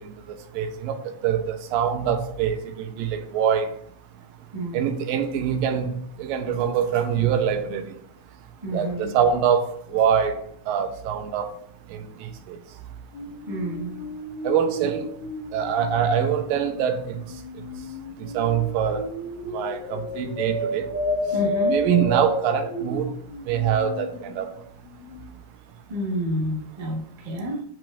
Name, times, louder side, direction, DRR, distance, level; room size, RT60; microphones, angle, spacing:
voice 1, 0.6-3.7 4.7-7.9 8.7-9.7 9.9-10.4 10.7-11.5 11.9-12.6 14.4-15.1 15.5-17.2 18.3-19.1 19.5-20.9 21.7-23.1 23.5-24.5, right 8 dB, 85° right, 2.5 m, -24 dB
voice 2, 4.5-4.9 8.6-9.1 13.5-14.0 21.3-21.7 25.9-27.6, equal, 40° right, 0.5 m, -29 dB
sound 1, 13.1-24.6 24.8-25.3, left 1 dB, 80° left, 4.2 m, -31 dB
8.5 x 6.1 x 2.6 m
omnidirectional pair, 3.9 m